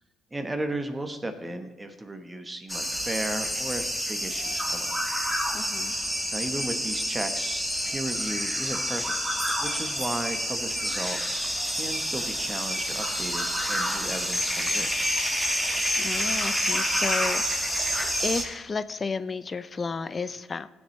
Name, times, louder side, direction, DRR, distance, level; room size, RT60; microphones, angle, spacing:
voice 1, 0.3-4.9 5.9-6.0 6.3-14.9, right 1 dB, 20° right, 6 dB, 1.2 m, -35 dB
sound 1, 2.7-18.4, equal, ahead, 1.7 m, -28 dB
voice 2, 5.5-6.0 15.9-17.4 18.2-20.7, left 4 dB, 40° left, 13 dB, 0.5 m, -32 dB
16.5 x 7.1 x 3.3 m, 1.1 s
supercardioid pair, 65°, 0 cm